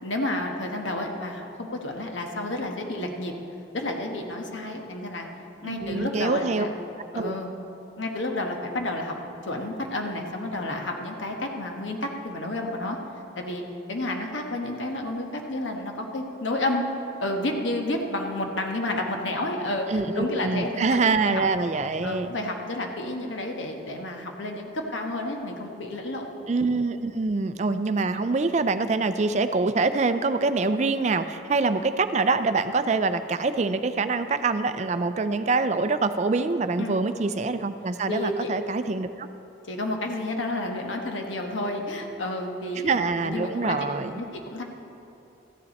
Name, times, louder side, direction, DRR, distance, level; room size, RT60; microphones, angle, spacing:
voice 1, 0.0-3.3 3.7-5.3 5.6-6.7 7.1-7.5 8.0-9.1 9.4-13.0 13.4-13.6 13.9-16.8 17.2-21.5 22.0-26.3 36.8-37.0 38.1-38.5 39.7-43.8 44.1-44.6, left 1 dB, 85° left, 2 dB, 1.2 m, -30 dB
voice 2, 5.6-6.7 7.1-7.4 19.9-22.3 26.5-39.3 42.8-44.2, right 3 dB, 35° right, 11 dB, 0.4 m, -25 dB
13.5 x 9.7 x 4.2 m, 2.9 s
head